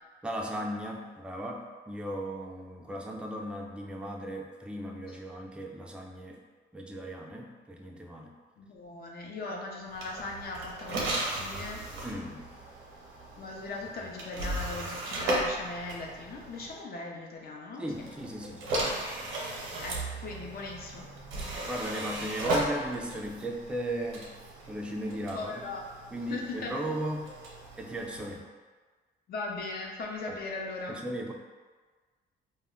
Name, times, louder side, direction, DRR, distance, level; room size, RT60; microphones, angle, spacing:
voice 1, 0.2-6.4 6.7-8.4 12.0-12.5 17.8-18.9 19.2-19.3 21.7-24.3 24.7-25.7 26.1-27.3 27.8-28.5 30.3-30.4 30.9-31.3, equal, 5° right, 1 dB, 0.3 m, -36 dB
voice 2, 8.6-11.8 13.4-18.1 19.8-21.1 25.3-25.9 26.3-26.7 29.3-31.0, left 3 dB, 50° left, 0 dB, 0.5 m, -39 dB
sound 1, 9.9-16.8 17.9-28.4, right 2 dB, 90° right, 0.7 m, -36 dB
2.2 x 2.1 x 3.5 m, 1.4 s
cardioid pair, 90°, 20 cm